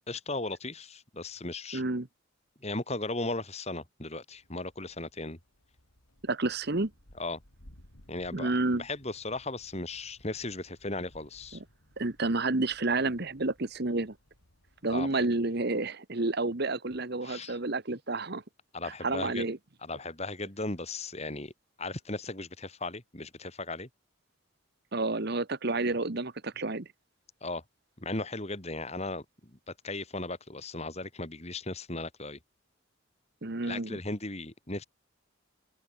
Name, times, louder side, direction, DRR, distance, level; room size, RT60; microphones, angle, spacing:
voice 1, 0.1-1.8 2.6-5.4 7.2-7.4 8.1-11.6 14.9-15.3 17.2-17.6 18.7-19.5 19.8-21.5 21.8-23.9 27.4-27.6 28.0-32.4 33.6-34.8, left 2 dB, 30° left, 2.8 m, -37 dB
voice 2, 1.7-2.1 6.2-6.9 8.3-8.8 12.0-14.1 14.8-18.4 18.8-19.6 24.9-26.9 33.4-34.0, right 2 dB, 50° right, 1.2 m, -30 dB
sound 1, 4.3-15.1, equal, 80° left, 5.2 m, -60 dB
head